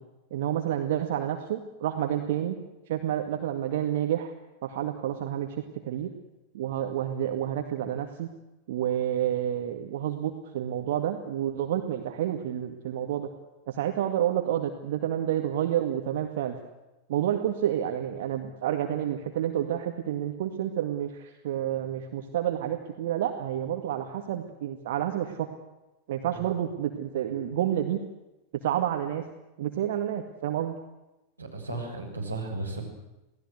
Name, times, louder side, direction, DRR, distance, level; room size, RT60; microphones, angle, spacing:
voice 1, 0.3-2.6 2.9-4.3 4.6-6.1 6.5-8.3 8.7-13.3 13.7-16.6 17.1-25.5 26.1-28.0 28.5-29.2 29.6-30.8, right 11 dB, 55° right, 5 dB, 2.0 m, -29 dB
voice 2, 31.4-32.8, right 2 dB, 80° right, -1 dB, 7.4 m, -35 dB
28.0 x 18.5 x 8.1 m, 1.0 s
figure-of-eight pair, 90°, 0 cm